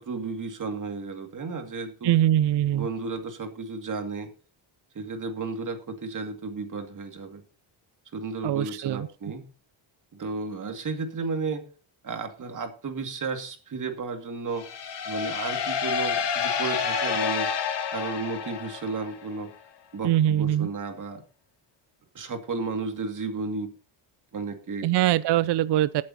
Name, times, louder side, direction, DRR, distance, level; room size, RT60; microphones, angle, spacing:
voice 1, 0.0-2.1 2.7-4.3 4.9-7.4 8.1-9.4 10.1-11.6 12.0-14.7 15.0-17.5 17.9-19.5 19.9-21.2 22.1-23.7 24.3-24.9, right 4 dB, 40° right, 6 dB, 2.2 m, -33 dB
voice 2, 2.0-2.9 8.4-9.1 20.0-20.7 24.8-26.0, right 12 dB, 60° right, 17 dB, 0.6 m, -22 dB
sound 1, 14.5-19.3, left 6 dB, 60° left, 2.7 m, -29 dB
19.5 x 8.7 x 2.9 m, 0.37 s
cardioid pair, 130°, 47 cm